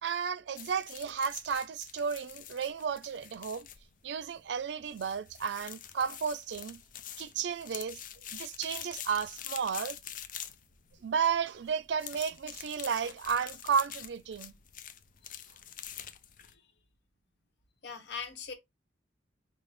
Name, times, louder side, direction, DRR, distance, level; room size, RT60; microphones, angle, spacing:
voice 1, 0.0-3.7 4.0-6.8 7.2-8.0 8.3-10.0 11.0-14.5, right 6 dB, 70° right, 0.4 m, -33 dB
sound 1, 0.5-16.5, left 10 dB, 45° left, 0.4 m, -46 dB
voice 2, 17.8-18.5, left 6 dB, 65° left, 0.9 m, -42 dB
5.3 x 2.0 x 3.2 m
head